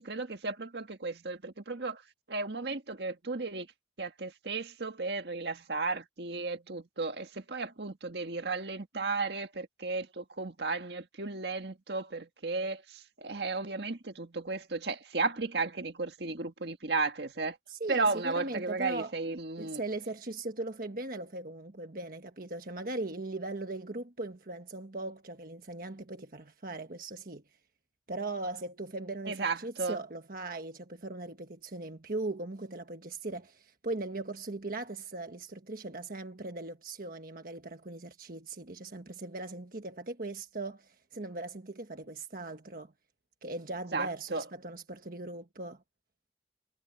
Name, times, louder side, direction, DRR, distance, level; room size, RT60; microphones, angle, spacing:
voice 1, 0.0-2.0 2.3-3.7 4.0-17.6 17.9-19.8 29.3-30.0 43.9-44.4, right 3 dB, 70° right, 1.8 m, -34 dB
voice 2, 17.7-19.1 19.6-27.4 28.1-42.9 43.4-45.8, right 2 dB, 50° right, 1.4 m, -39 dB
head